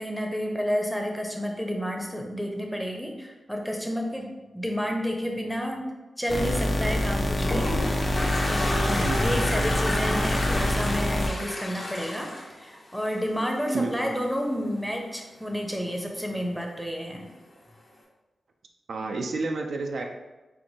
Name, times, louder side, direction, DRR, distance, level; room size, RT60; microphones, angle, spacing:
voice 1, 0.0-4.3 4.5-5.8 6.2-8.0 8.5-17.3, equal, ahead, 2 dB, 0.7 m, -30 dB
sound 1, 6.3-11.3, left 1 dB, 35° left, 0.5 m, -26 dB
Toilet flush, 7.1-13.4, left 1 dB, 60° left, 1.1 m, -31 dB
voice 2, 9.0-9.5 13.7-14.1 18.9-20.0, right 3 dB, 75° right, 2 dB, 0.4 m, -30 dB
4.3 x 2.5 x 2.8 m, 1.1 s
cardioid pair, 55°, 0 cm